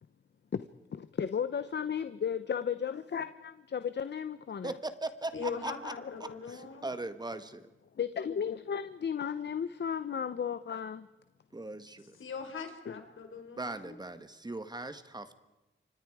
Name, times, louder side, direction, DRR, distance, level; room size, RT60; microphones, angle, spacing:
voice 1, 0.9-4.7 6.0-6.4 8.0-11.1 12.9-13.0, left 7 dB, 60° left, 12 dB, 0.9 m, -34 dB
voice 2, 4.6-5.9 6.2-7.7 11.5-12.1 13.6-15.4, right 2 dB, 20° right, 10 dB, 1.6 m, -39 dB
voice 3, 5.3-6.9 12.2-14.0, left 5 dB, 80° left, 5 dB, 4.3 m, -40 dB
29.0 x 25.5 x 4.9 m, 1.1 s
wide cardioid pair, 100°, 20 cm